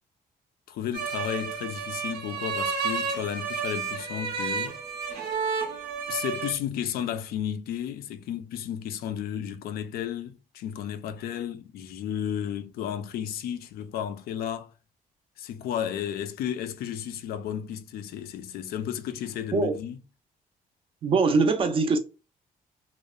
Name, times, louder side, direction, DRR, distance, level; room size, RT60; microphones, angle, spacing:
voice 1, 0.7-4.8 6.1-14.7 15.4-20.0, left 9 dB, 85° left, 0.4 m, -33 dB
sound 1, 0.9-6.5, right 5 dB, 90° right, 0.7 m, -31 dB
voice 2, 21.0-22.0, right 4 dB, 35° right, 0.4 m, -22 dB
2.9 x 2.0 x 2.2 m
cardioid pair, 165°, 15 cm